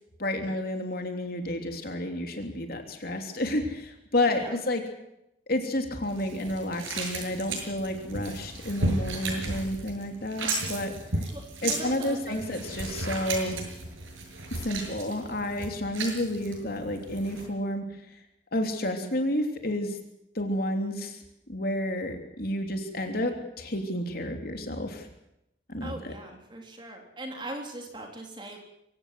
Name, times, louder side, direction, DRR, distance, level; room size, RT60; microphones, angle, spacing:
voice 1, 0.2-4.8 5.5-10.9 11.6-13.6 14.5-17.8 18.5-20.0 20.3-21.2 21.5-25.1 25.7-26.1, left 1 dB, 50° left, 4 dB, 3.3 m, -30 dB
sound 1, 6.0-17.4, right 2 dB, 90° right, 7.6 m, -35 dB
voice 2, 11.3-12.4 25.8-28.6, right 1 dB, 25° right, 2 dB, 3.8 m, -40 dB
24.0 x 16.5 x 7.7 m, 0.84 s
head